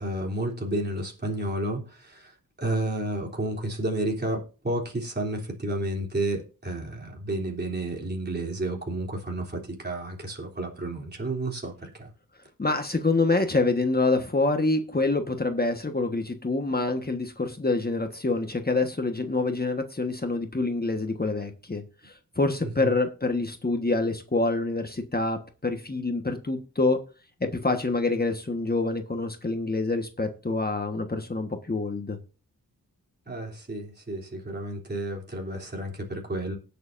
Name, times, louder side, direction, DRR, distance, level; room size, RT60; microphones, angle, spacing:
voice 1, 0.0-12.1 22.6-23.0 33.3-36.6, right 1 dB, 25° right, 3.4 m, -31 dB
voice 2, 12.6-27.0 27.4-32.2, left 3 dB, 25° left, 1.5 m, -26 dB
18.5 x 6.8 x 2.7 m
cardioid pair, 65°, 36 cm